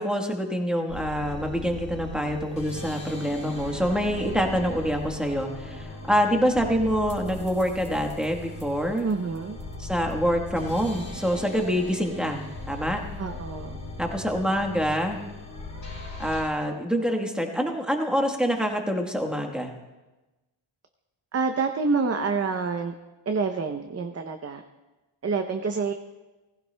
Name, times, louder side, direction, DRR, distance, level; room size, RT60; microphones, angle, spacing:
voice 1, 0.0-9.1 9.8-13.0 14.0-15.2 16.2-19.7, equal, ahead, 2 dB, 1.2 m, -26 dB
sound 1, 0.9-16.4, left 2 dB, 40° left, 4.6 m, -38 dB
voice 2, 9.0-9.6 13.2-13.8 21.3-22.9 23.3-24.6 25.2-25.9, right 4 dB, 30° right, 5 dB, 0.6 m, -27 dB
18.5 x 16.0 x 2.2 m, 1.1 s
wide cardioid pair, 150°, 49 cm